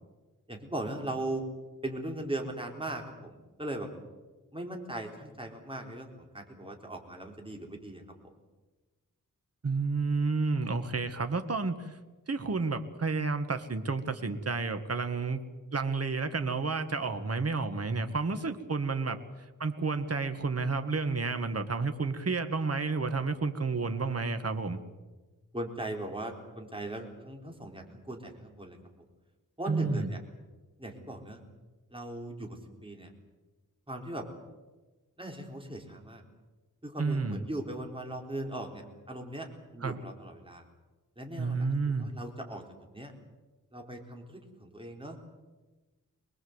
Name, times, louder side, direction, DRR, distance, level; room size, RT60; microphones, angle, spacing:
voice 1, 0.5-1.5 1.8-3.9 4.5-8.0 25.5-28.8 29.6-30.2 30.8-31.4 31.9-33.1 33.9-34.3 35.2-36.2 36.8-40.6 41.2-41.7 42.0-42.6 42.9-43.1 43.7-45.2, right 1 dB, 15° right, 2 dB, 4.1 m, -39 dB
voice 2, 9.6-11.9 12.3-15.4 15.7-19.2 19.6-24.8 29.7-30.1 37.0-37.4 39.8-40.0 41.4-42.1, right 4 dB, 45° right, 8 dB, 1.8 m, -30 dB
24.5 x 20.5 x 8.1 m, 1.2 s
wide cardioid pair, 95°, 34 cm